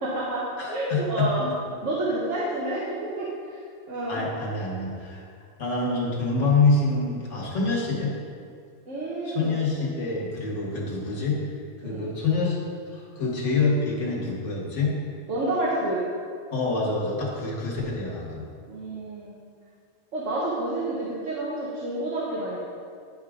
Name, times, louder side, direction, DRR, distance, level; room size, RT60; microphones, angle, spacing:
voice 1, 0.0-1.5 1.8-3.6 3.9-4.3 8.9-9.6 11.8-12.1 15.3-16.0 18.7-19.3 20.1-22.6, right 1 dB, 85° right, -7 dB, 1.4 m, -29 dB
voice 2, 0.6-1.3 4.1-5.2 5.6-8.1 9.3-11.4 11.8-12.6 12.9-14.9 16.5-18.4, left 3 dB, 80° left, -4 dB, 1.8 m, -26 dB
10.5 x 3.7 x 5.0 m, 2.2 s
omnidirectional pair, 1.2 m